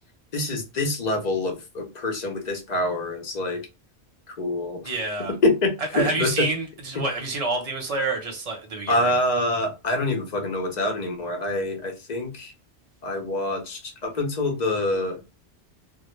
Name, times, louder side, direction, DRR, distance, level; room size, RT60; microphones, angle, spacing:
voice 1, 0.3-3.6 4.3-4.9 5.3-6.5 7.0-7.1 8.9-12.5 13.0-15.2, left 2 dB, 45° left, 0.6 m, -26 dB
voice 2, 4.8-5.3 5.9-9.1, right 3 dB, 35° right, 0.7 m, -28 dB
2.1 x 2.0 x 3.0 m
omnidirectional pair, 1.2 m